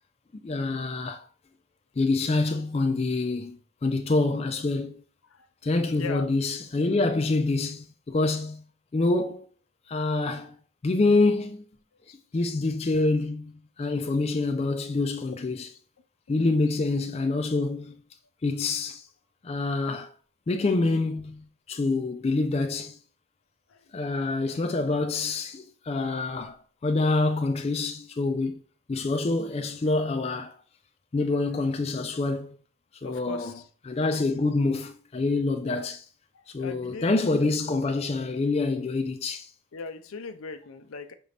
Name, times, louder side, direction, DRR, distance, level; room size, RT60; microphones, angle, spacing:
voice 1, 0.4-1.2 2.0-5.0 5.6-8.6 8.9-9.5 9.9-10.5 10.8-11.6 12.3-15.7 16.3-18.0 18.4-19.0 19.4-20.1 20.5-22.9 23.9-28.6 28.9-30.5 31.1-32.6 33.0-33.6 33.9-36.0 36.5-39.5, left 3 dB, 30° left, 0.3 m, -26 dB
voice 2, 5.9-6.3 15.3-15.4 33.0-33.6 35.6-35.9 36.6-37.1 37.4-37.5 39.7-41.1, left 4 dB, 85° left, 0.5 m, -38 dB
5.9 x 2.6 x 3.3 m
head